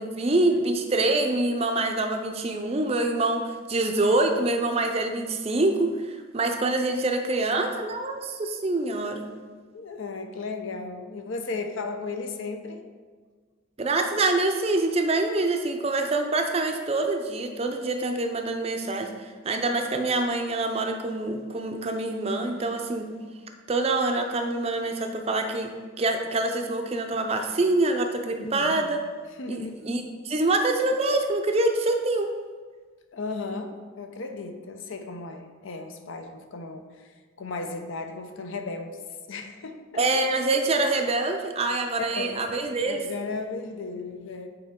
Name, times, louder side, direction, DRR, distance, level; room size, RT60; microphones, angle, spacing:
voice 1, 0.0-9.3 13.8-19.1 19.4-23.1 23.7-25.7 26.0-29.0 29.5-32.3 39.9-43.0, right 2 dB, 30° right, 4 dB, 0.5 m, -25 dB
voice 2, 9.7-12.8 28.4-28.9 29.4-29.8 33.1-37.1 37.4-40.1 41.7-42.4 42.8-44.5, left 3 dB, 70° left, 6 dB, 0.6 m, -35 dB
7.8 x 4.3 x 3.7 m, 1.5 s
head